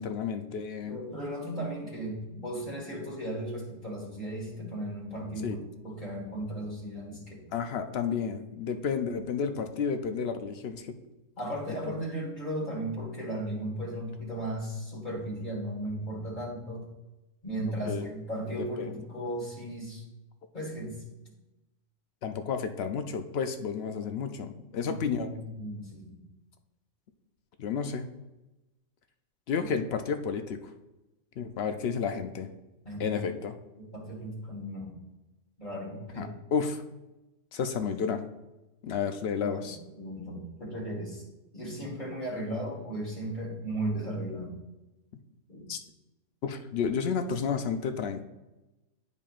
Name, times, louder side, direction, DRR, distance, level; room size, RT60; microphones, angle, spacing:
voice 1, 0.0-1.0 5.4-5.6 7.5-10.9 17.6-18.0 18.6-18.9 22.2-25.3 27.6-28.1 29.5-30.6 31.4-32.5 33.0-33.5 36.2-36.8 37.5-38.2 38.8-39.8 45.7-45.8 46.4-48.2, left 6 dB, 60° left, 7 dB, 0.7 m, -31 dB
voice 2, 0.8-7.5 11.4-16.9 17.4-20.0 20.5-21.0 24.7-26.2 32.9-33.2 33.8-35.0 35.6-36.3 39.4-41.2 41.5-44.6 45.5-45.7, right 1 dB, 35° left, -4 dB, 1.8 m, -36 dB
10.5 x 5.4 x 2.5 m, 1.0 s
omnidirectional pair, 1.4 m